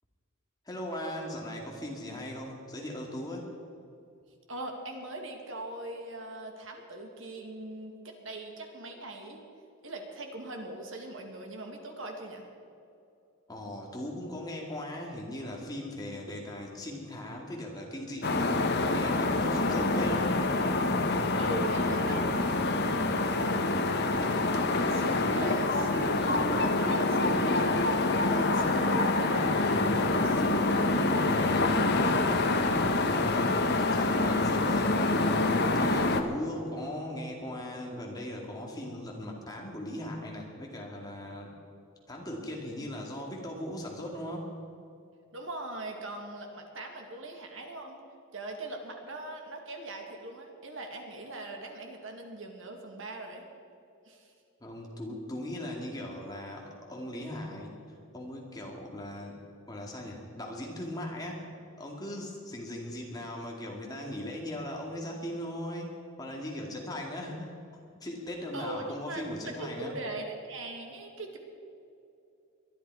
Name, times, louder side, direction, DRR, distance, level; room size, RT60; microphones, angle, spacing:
voice 1, 0.7-3.5 13.5-20.3 33.1-35.0 35.7-41.5 42.1-44.5 54.6-57.8 58.1-59.4 59.7-61.5 61.8-67.6 68.0-69.9, left 1 dB, 20° left, -1 dB, 2.3 m, -39 dB
voice 2, 4.5-9.4 9.8-12.4 21.4-31.1 31.4-32.3 45.3-48.0 48.3-53.5 54.1-54.3 68.5-71.4, right 2 dB, 60° right, 2 dB, 2.2 m, -41 dB
sound 1, 18.2-36.2, left 2 dB, 50° left, 1.1 m, -26 dB
22.0 x 12.0 x 4.8 m, 2.6 s
head